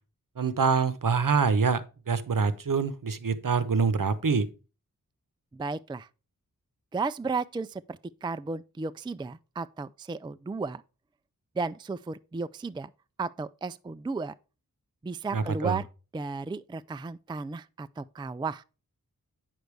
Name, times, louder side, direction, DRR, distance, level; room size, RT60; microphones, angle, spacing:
voice 1, 0.4-4.5 15.3-15.8, right 5 dB, 65° right, 1.0 m, -25 dB
voice 2, 5.5-6.1 6.9-10.8 11.6-12.9 13.2-14.3 15.0-15.9 16.1-18.6, right 4 dB, 15° right, 0.3 m, -34 dB
9.1 x 6.6 x 3.4 m
wide cardioid pair, 85°, 36 cm